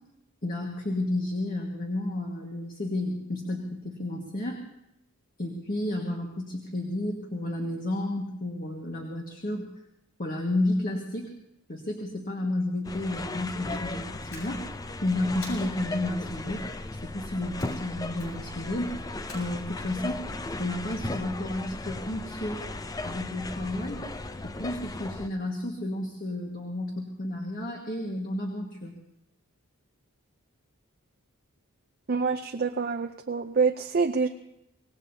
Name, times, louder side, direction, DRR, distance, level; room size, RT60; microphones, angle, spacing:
voice 1, 0.4-4.6 5.4-9.7 10.2-11.3 11.7-14.6 15.0-16.7 17.0-18.9 19.3-20.2 20.6-22.7 23.0-24.0 24.4-28.9, left 1 dB, 40° left, 0 dB, 1.7 m, -31 dB
sound 1, 12.8-25.3, left 2 dB, 15° left, 0.5 m, -36 dB
sound 2, 14.3-14.9 15.4-16.0 17.6-17.9 18.2-18.6 19.3-20.0, left 2 dB, 80° left, 6.2 m, -47 dB
voice 2, 32.1-34.3, right 5 dB, 45° right, 5 dB, 0.6 m, -26 dB
25.0 x 18.5 x 2.8 m, 0.84 s
head